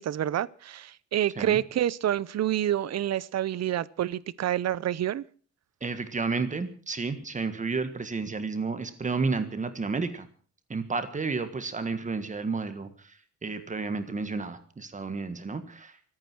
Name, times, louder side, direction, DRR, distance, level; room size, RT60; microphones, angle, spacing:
voice 1, 0.0-5.2, right 11 dB, 60° right, 20 dB, 0.7 m, -28 dB
voice 2, 5.8-10.3 10.7-16.0, right 4 dB, 25° right, 10 dB, 1.6 m, -31 dB
25.5 x 8.9 x 6.2 m, 0.42 s
wide cardioid pair, 175°, 30 cm